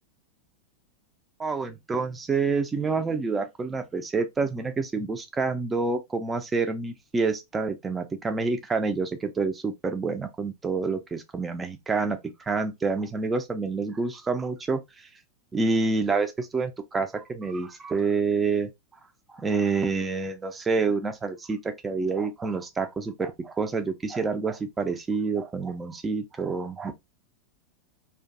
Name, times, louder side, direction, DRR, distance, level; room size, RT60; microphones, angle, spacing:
voice 1, 1.4-15.1 15.5-18.7 19.3-26.9, right 4 dB, 15° right, 0.4 m, -28 dB
2.5 x 2.2 x 2.4 m
figure-of-eight pair, 90°, 0 cm